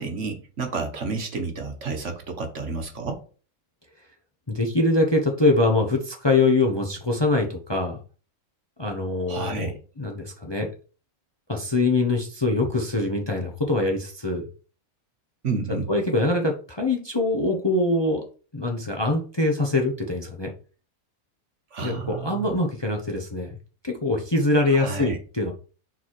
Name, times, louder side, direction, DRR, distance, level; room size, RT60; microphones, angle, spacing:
voice 1, 0.0-3.2 9.3-9.7 15.4-15.9 21.7-22.5 24.7-25.2, right 4 dB, 55° right, 5 dB, 1.5 m, -30 dB
voice 2, 4.5-8.0 8.8-10.7 11.5-14.5 15.9-18.2 18.5-20.5 21.8-23.6 23.8-25.5, left 2 dB, 20° left, 2 dB, 0.9 m, -23 dB
7.0 x 4.2 x 4.7 m, 0.38 s
omnidirectional pair, 1.5 m